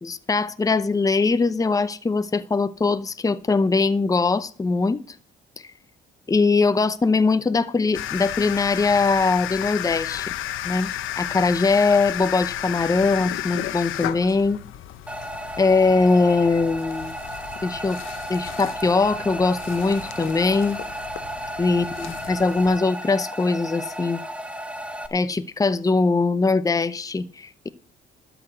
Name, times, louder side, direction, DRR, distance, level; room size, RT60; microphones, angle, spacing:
voice 1, 0.0-5.2 6.3-10.3 10.6-10.9 11.2-14.6 15.6-17.2 17.6-18.0 18.3-20.8 21.6-24.2 25.1-27.7, left 3 dB, 15° left, 0.7 m, -21 dB
sound 1, 7.9-22.8, left 12 dB, 85° left, 0.9 m, -33 dB
sound 2, 15.1-25.1, equal, 5° right, 1.5 m, -34 dB
12.5 x 6.1 x 7.7 m
cardioid pair, 90°, 20 cm